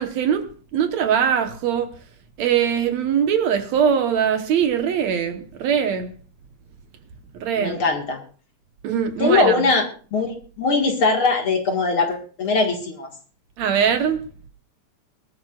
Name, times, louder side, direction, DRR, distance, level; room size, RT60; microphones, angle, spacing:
voice 1, 0.0-1.9 2.4-6.1 7.3-7.8 8.8-9.6 13.6-14.2, right 8 dB, 65° right, 2.3 m, -21 dB
voice 2, 7.6-8.2 9.2-9.9 10.1-13.1, left 3 dB, 50° left, 2.4 m, -21 dB
22.5 x 12.5 x 2.4 m
omnidirectional pair, 3.5 m